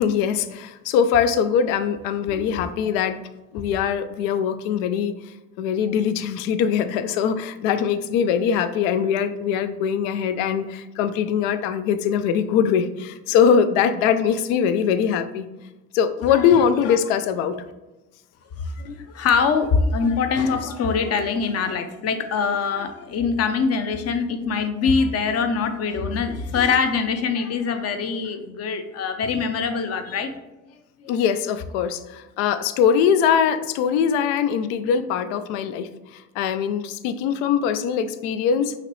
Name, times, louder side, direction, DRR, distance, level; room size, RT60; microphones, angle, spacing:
voice 1, 0.0-3.2 3.5-5.1 5.6-15.5 15.9-17.5 31.1-35.9 36.4-38.7, left 7 dB, 80° left, 12 dB, 0.5 m, -22 dB
voice 2, 16.3-17.0 18.6-30.3, left 5 dB, 45° left, 8 dB, 0.7 m, -23 dB
5.8 x 2.9 x 3.1 m, 1.0 s
supercardioid pair, 90°, 35 cm